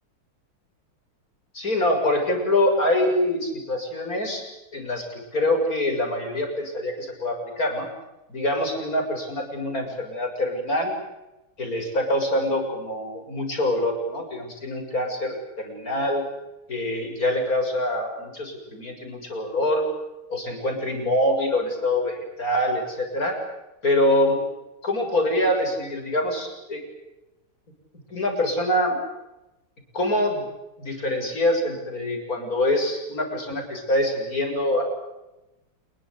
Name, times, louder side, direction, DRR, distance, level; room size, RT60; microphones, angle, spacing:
voice 1, 1.5-4.4 4.7-7.9 8.3-11.0 11.6-16.3 16.7-19.8 20.3-23.4 23.8-24.4 24.8-26.8 28.1-29.0 29.9-30.4 30.8-34.8, left 1 dB, 40° left, 4 dB, 7.7 m, -25 dB
28.5 x 22.5 x 8.3 m, 0.97 s
omnidirectional pair, 2.4 m